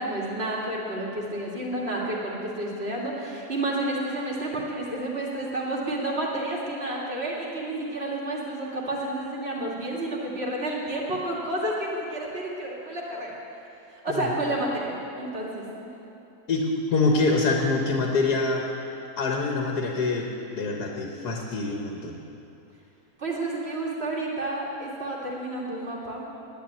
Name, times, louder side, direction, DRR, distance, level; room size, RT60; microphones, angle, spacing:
voice 1, 0.0-13.4 13.9-15.9 23.2-26.3, right 1 dB, 40° right, -3 dB, 2.4 m, -30 dB
voice 2, 16.5-18.7 19.2-22.2, left 3 dB, 90° left, 1 dB, 1.8 m, -25 dB
10.5 x 10.0 x 9.0 m, 2.9 s
omnidirectional pair, 1.6 m